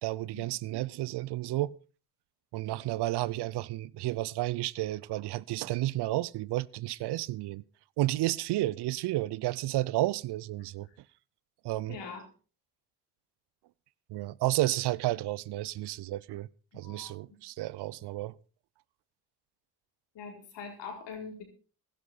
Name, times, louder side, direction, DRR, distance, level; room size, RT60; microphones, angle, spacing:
voice 1, 0.0-1.8 2.5-7.6 8.0-10.9 11.6-12.0 14.1-16.5 16.7-18.3, right 16 dB, 70° right, 0.7 m, -31 dB
voice 2, 11.9-12.2 16.7-17.1 20.1-21.4, left 5 dB, 75° left, 4.6 m, -42 dB
15.5 x 12.5 x 4.2 m
supercardioid pair, 55°, 42 cm